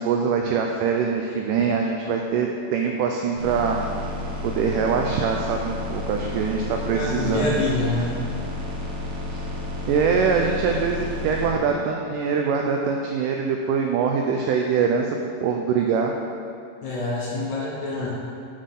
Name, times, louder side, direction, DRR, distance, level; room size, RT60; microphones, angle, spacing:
voice 1, 0.0-4.1 4.4-7.5 9.3-9.4 9.9-15.1 15.4-16.1, right 6 dB, 85° right, 2 dB, 1.8 m, -23 dB
sound 1, 3.3-11.5, left 2 dB, 65° right, 1.4 m, -31 dB
voice 2, 6.8-8.2 16.8-18.1, left 2 dB, 70° left, -5 dB, 2.0 m, -26 dB
7.4 x 5.1 x 5.4 m, 2.4 s
omnidirectional pair, 4.2 m